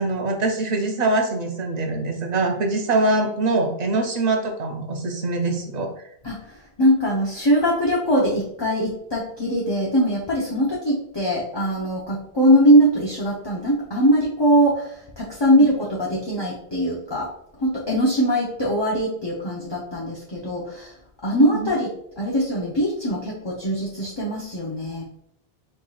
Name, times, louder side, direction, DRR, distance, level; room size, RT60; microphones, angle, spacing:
voice 1, 0.0-5.9 21.3-21.7, right 2 dB, 45° right, 3 dB, 0.9 m, -23 dB
voice 2, 6.2-17.3 17.6-20.9 21.2-21.9 22.2-25.1, equal, 25° left, -4 dB, 0.8 m, -21 dB
4.6 x 4.5 x 2.4 m, 0.71 s
omnidirectional pair, 1.1 m